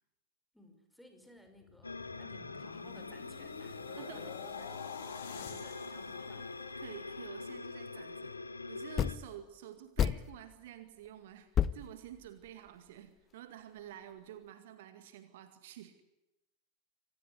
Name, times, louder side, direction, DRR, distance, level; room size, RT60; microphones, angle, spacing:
voice 1, 0.5-6.5, left 1 dB, ahead, 6 dB, 5.4 m, -58 dB
sound 1, 1.5-7.7 8.2-8.4, left 8 dB, 55° left, 3.6 m, -48 dB
sound 2, 1.8-9.2, left 3 dB, 80° left, 1.3 m, -44 dB
voice 2, 4.0-4.3 5.5-5.7 6.3-6.4 6.8-8.4 8.7-16.0, right 10 dB, 55° right, 10 dB, 2.1 m, -50 dB
sound 3, 6.9-7.0 9.0-9.4 10.0-10.6 11.1-11.2 11.5-12.8, left 9 dB, 25° left, 0.8 m, -32 dB
26.0 x 18.0 x 10.0 m, 0.95 s
figure-of-eight pair, 90°, 0 cm